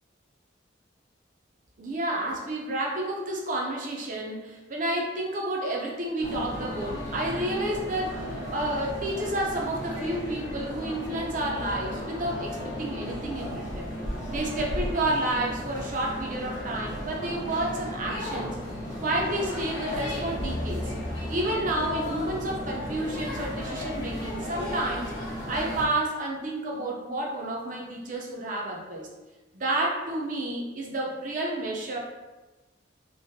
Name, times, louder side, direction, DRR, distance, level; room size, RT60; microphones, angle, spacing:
voice 1, 1.8-13.9 14.3-18.6 19.0-20.9 21.3-25.1 25.5-29.1 29.5-32.0, right 1 dB, 45° right, -1 dB, 0.5 m, -30 dB
sound 1, 6.2-25.8, left 1 dB, 70° left, 0.9 m, -35 dB
sound 2, 19.9-24.1, left 1 dB, 15° left, 0.4 m, -38 dB
3.0 x 2.0 x 2.7 m, 1.2 s
head